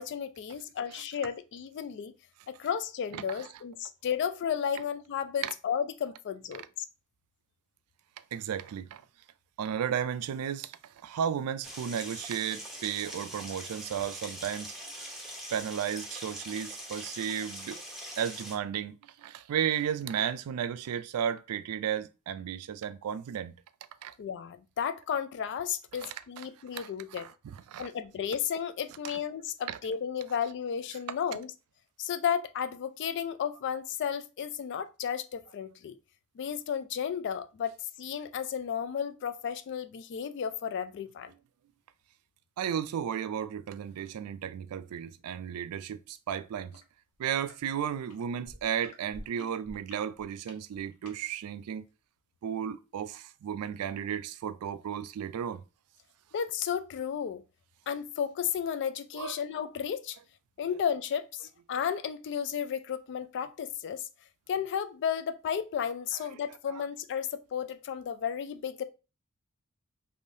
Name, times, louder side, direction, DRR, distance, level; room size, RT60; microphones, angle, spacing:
voice 1, 0.0-2.1 2.5-6.9 24.2-27.3 27.8-31.5 32.0-36.0 36.4-41.3 56.3-57.4 57.9-60.2 60.6-64.1 64.5-68.8, left 8 dB, 50° left, 0.3 m, -33 dB
voice 2, 8.3-9.0 9.6-10.8 11.0-14.7 15.5-17.8 18.2-23.5 24.0-24.1 26.0-26.1 26.7-26.9 27.2-27.3 27.7-27.9 29.7-29.8 42.6-46.7 47.2-51.8 52.4-55.6 59.1-59.3 66.7-66.9, right 8 dB, 80° right, 0.3 m, -34 dB
sound 1, 11.6-18.5, equal, ahead, 0.6 m, -43 dB
sound 2, 46.7-46.9 47.2-47.6 48.1-51.2 51.9-52.0, left 1 dB, 80° left, 0.7 m, -49 dB
3.3 x 2.6 x 2.6 m
head